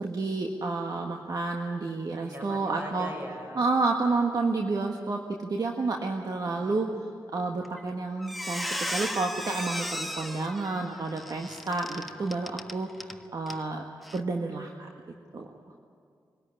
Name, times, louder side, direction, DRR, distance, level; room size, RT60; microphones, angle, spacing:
voice 1, 0.0-3.1 3.5-6.9 7.3-13.8 14.1-14.9 15.3-15.5, right 3 dB, 55° right, 2 dB, 1.6 m, -30 dB
voice 2, 2.2-3.7 6.3-6.9 15.6-15.8, right 1 dB, 30° right, 1 dB, 6.6 m, -42 dB
Squeak, 7.6-7.9 8.2-13.2 13.5-13.6 14.0-14.2, equal, ahead, 1.3 m, -35 dB
24.5 x 13.5 x 9.8 m, 2.3 s
cardioid pair, 55°, 8 cm